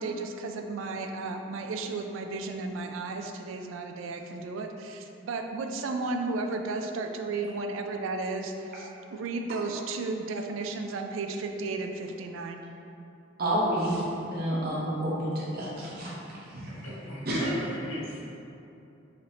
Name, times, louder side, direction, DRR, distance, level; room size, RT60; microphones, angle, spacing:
voice 1, 0.0-12.6, right 3 dB, 80° right, 5 dB, 0.3 m, -34 dB
voice 2, 13.4-16.1 16.5-16.8 17.3-17.4, right 1 dB, 50° right, -7 dB, 0.7 m, -29 dB
voice 3, 16.8-18.2, equal, 85° left, -7 dB, 1.1 m, -39 dB
5.0 x 2.7 x 2.7 m, 2.8 s
head